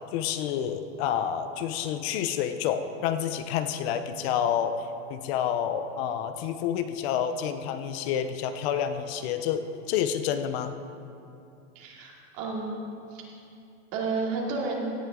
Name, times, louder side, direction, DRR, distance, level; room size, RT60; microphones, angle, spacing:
voice 1, 0.1-10.8, left 9 dB, 65° left, 9 dB, 0.8 m, -29 dB
voice 2, 11.7-12.8 13.1-13.2 13.9-14.9, right 4 dB, 60° right, -2 dB, 2.7 m, -31 dB
17.0 x 10.5 x 3.8 m, 2.6 s
supercardioid pair, 160°, 34 cm